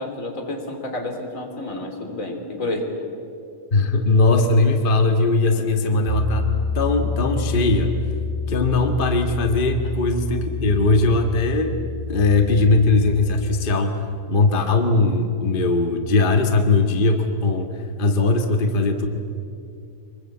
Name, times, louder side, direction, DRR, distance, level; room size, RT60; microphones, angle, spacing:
voice 1, 0.0-2.9 3.8-3.9 5.5-5.7 8.5-8.6, left 1 dB, 25° left, 2 dB, 3.4 m, -30 dB
voice 2, 3.7-7.9 8.5-11.7 12.1-13.9 14.3-17.7 18.0-19.1, left 3 dB, 45° left, 4 dB, 0.6 m, -19 dB
Piano, 6.1-13.7, left 4 dB, 5° right, 4.3 m, -28 dB
25.0 x 21.5 x 8.6 m, 2.5 s
omnidirectional pair, 3.8 m